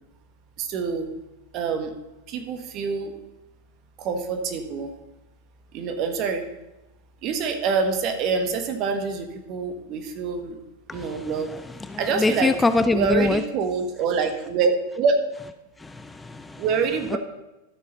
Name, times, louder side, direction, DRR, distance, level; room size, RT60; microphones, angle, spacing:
voice 1, 0.6-1.1 1.5-1.9 2.3-3.1 4.0-4.9 5.7-6.4 7.2-10.6 10.9-11.5 12.0-12.5 12.9-15.2 16.6-17.2, right 5 dB, 40° right, 7 dB, 1.4 m, -26 dB
voice 2, 10.9-13.4 15.8-16.6, left 3 dB, 10° left, 10 dB, 0.5 m, -24 dB
13.0 x 6.9 x 4.1 m, 1.0 s
figure-of-eight pair, 90°, 0 cm